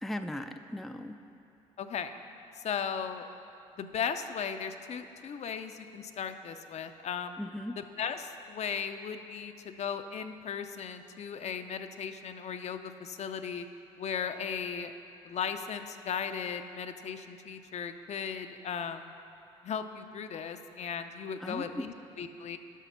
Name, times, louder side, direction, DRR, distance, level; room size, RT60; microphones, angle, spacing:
voice 1, 0.0-1.2 7.4-7.8 21.4-21.8, left 1 dB, ahead, 6 dB, 0.4 m, -37 dB
voice 2, 1.8-2.1 2.5-3.3 3.8-7.4 7.8-13.7 14.0-14.9 15.2-19.1 19.6-22.6, left 7 dB, 50° left, 8 dB, 0.6 m, -37 dB
9.2 x 5.8 x 5.8 m, 2.7 s
supercardioid pair, 65°, 14 cm